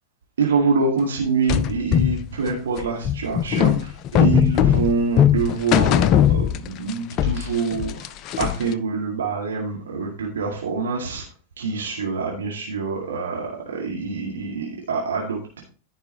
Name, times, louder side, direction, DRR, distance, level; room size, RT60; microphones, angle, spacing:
voice 1, 0.4-11.2 11.6-15.6, right 4 dB, 65° right, -2 dB, 2.1 m, -25 dB
sound 1, 1.5-6.9 7.2-8.7, left 10 dB, 35° left, 0.5 m, -19 dB
14.5 x 5.4 x 3.1 m, 0.40 s
figure-of-eight pair, 90°, 0 cm